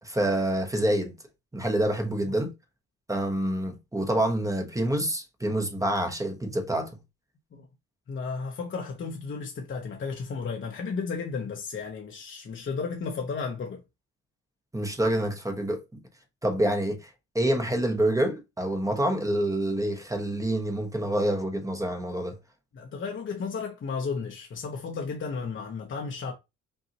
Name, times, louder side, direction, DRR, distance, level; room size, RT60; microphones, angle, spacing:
voice 1, 0.0-1.2 1.5-2.5 3.1-6.9 14.7-16.0 16.4-17.1 17.3-22.4, right 1 dB, 10° right, 0.9 m, -27 dB
voice 2, 8.1-13.8 22.7-26.3, left 5 dB, 40° left, 0.8 m, -33 dB
5.4 x 2.7 x 2.8 m
cardioid pair, 90°, 30 cm